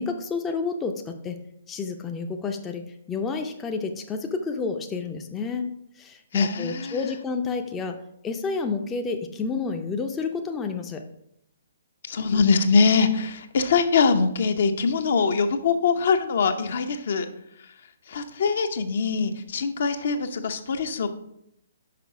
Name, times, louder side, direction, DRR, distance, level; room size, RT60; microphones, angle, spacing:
voice 1, 0.0-1.4 1.7-5.7 5.9-8.0 8.2-11.0, left 4 dB, 15° left, 5 dB, 0.5 m, -30 dB
voice 2, 6.3-7.0 12.1-17.3 18.1-21.1, left 5 dB, 55° left, 8 dB, 0.7 m, -23 dB
5.9 x 5.3 x 4.8 m, 0.76 s
figure-of-eight pair, 130°, 0 cm